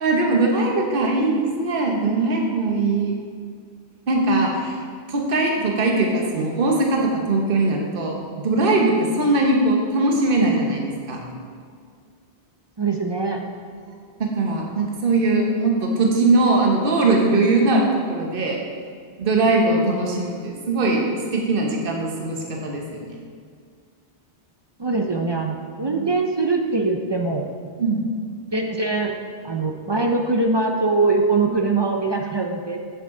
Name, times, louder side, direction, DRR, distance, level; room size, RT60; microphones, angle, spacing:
voice 1, 0.0-3.1 4.1-4.8 5.1-11.2 14.2-18.6 19.2-21.1 21.3-23.2 25.9-26.0 27.8-28.0, right 2 dB, 60° right, 0 dB, 1.2 m, -21 dB
voice 2, 12.8-13.4 19.4-19.8 24.8-27.5 28.5-29.1 29.4-32.8, right 3 dB, 40° right, 3 dB, 0.4 m, -22 dB
8.4 x 6.8 x 3.8 m, 2.1 s
omnidirectional pair, 1.0 m